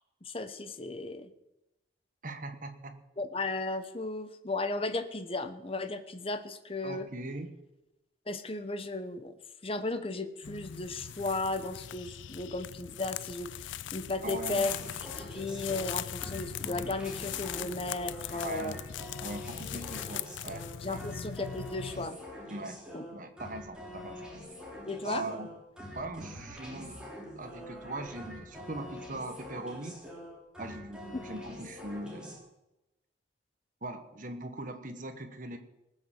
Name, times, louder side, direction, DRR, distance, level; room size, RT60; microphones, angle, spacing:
voice 1, 0.2-1.3 3.2-7.1 8.3-9.3 9.6-14.7 15.2-18.8 20.8-22.2 22.9-23.0 24.8-25.2, left 2 dB, 30° left, 10 dB, 0.9 m, -35 dB
voice 2, 2.2-3.0 6.8-7.5 14.2-14.7 18.4-18.8 19.2-21.0 22.5-24.3 25.0-25.5 25.9-30.0 30.6-32.4 33.8-35.6, right 2 dB, 45° right, 7 dB, 1.4 m, -40 dB
sound 1, 10.4-22.1, left 10 dB, 80° left, 0.4 m, -40 dB
sound 2, 14.4-32.4, equal, 5° right, 3.4 m, -45 dB
18.5 x 6.7 x 7.4 m, 0.93 s
head